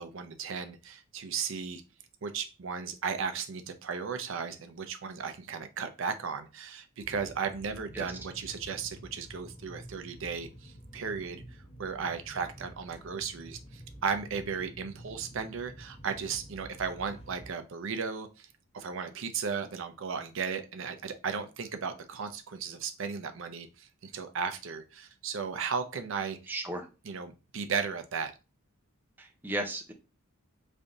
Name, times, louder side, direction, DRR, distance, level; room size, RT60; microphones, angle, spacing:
voice 1, 0.0-1.8 2.2-18.5 18.7-26.5 27.0-28.3, right 5 dB, 60° right, 7 dB, 0.5 m, -35 dB
sound 1, 7.0-17.5, right 1 dB, 30° left, 0.8 m, -49 dB
voice 2, 26.5-26.9 29.2-29.9, right 1 dB, 10° right, 3 dB, 0.4 m, -35 dB
3.3 x 2.6 x 3.7 m, 0.30 s
head